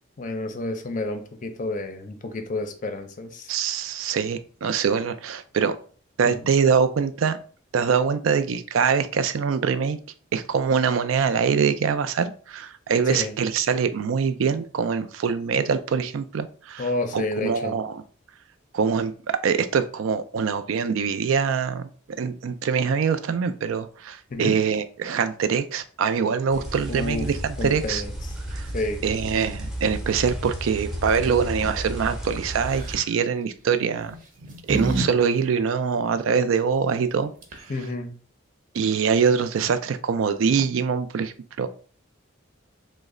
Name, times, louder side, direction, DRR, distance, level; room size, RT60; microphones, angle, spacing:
voice 1, 0.2-3.5 6.2-6.3 13.2-13.3 16.8-17.8 24.3-24.6 26.9-27.3 27.6-28.1 28.7-29.0 37.7-38.1, left 2 dB, 40° left, 6 dB, 0.5 m, -30 dB
voice 2, 3.5-5.8 6.2-7.4 7.7-10.0 10.3-18.0 18.7-21.9 22.2-28.0 28.5-28.7 29.0-34.1 34.7-37.3 38.7-41.7, right 6 dB, 85° right, 11 dB, 0.4 m, -24 dB
sound 1, 26.5-33.0, equal, ahead, 0.6 m, -33 dB
sound 2, 32.6-33.0 34.0-35.1 35.4-35.5 37.1-37.2 37.4-37.8, right 2 dB, 40° right, 0.6 m, -28 dB
3.1 x 2.1 x 3.6 m, 0.41 s
head